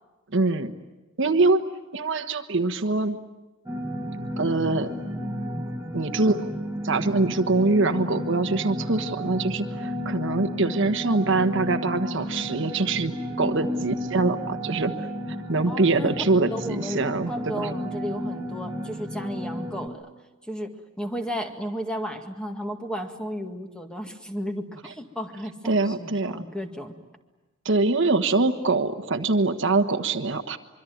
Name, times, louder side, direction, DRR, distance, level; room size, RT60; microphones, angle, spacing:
voice 1, 0.3-0.7 1.2-1.6 1.9-3.2 4.4-4.9 5.9-6.4 6.8-13.1 13.4-14.9 15.5-17.3 17.6-17.7 25.6-26.4 27.6-30.6, right 3 dB, 65° right, 8 dB, 1.3 m, -23 dB
sound 1, 3.7-19.9, equal, 15° right, 1.4 m, -32 dB
voice 2, 15.6-16.2 16.5-20.1 20.5-26.9, equal, 5° left, 4 dB, 1.9 m, -34 dB
25.0 x 24.0 x 9.3 m, 1.1 s
head